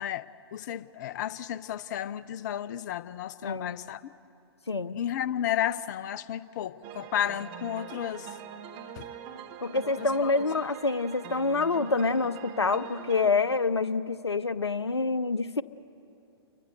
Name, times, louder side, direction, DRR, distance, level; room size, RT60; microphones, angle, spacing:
voice 1, 0.0-4.0 4.9-8.4 9.0-9.1 9.8-10.3, left 11 dB, 45° left, 0.7 m, -33 dB
voice 2, 3.4-3.8 4.7-5.0 9.6-15.6, left 3 dB, 85° left, 0.7 m, -27 dB
sound 1, 6.8-13.3, right 8 dB, 35° right, 1.8 m, -43 dB
29.0 x 23.5 x 6.8 m
figure-of-eight pair, 115°, 14 cm